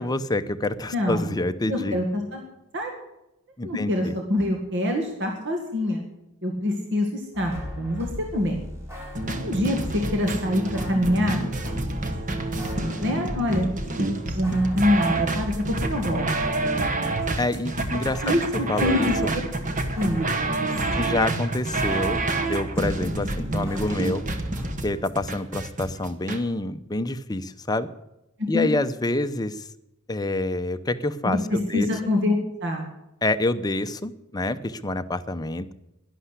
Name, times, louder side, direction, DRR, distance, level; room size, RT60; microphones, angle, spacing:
voice 1, 0.0-2.0 3.6-4.1 17.4-18.3 18.7-19.3 20.9-24.2 24.8-27.9 28.5-29.6 30.1-31.9 33.2-35.7, left 2 dB, 20° left, 10 dB, 0.7 m, -27 dB
voice 2, 0.9-1.3 1.7-2.4 2.7-2.9 3.6-6.0 6.4-8.6 9.4-11.4 13.0-13.7 14.0-14.1 14.3-16.3 18.2-19.1 19.9-21.1 28.4-28.7 31.2-32.9, left 1 dB, 55° right, 2 dB, 1.9 m, -25 dB
sound 1, 7.3-10.2 10.7-13.9 14.1-21.3 21.5-24.7, left 1 dB, 15° right, 4.6 m, -38 dB
sound 2, 9.2-26.4, right 2 dB, 35° right, 1.4 m, -28 dB
11.5 x 11.0 x 8.2 m, 0.90 s
head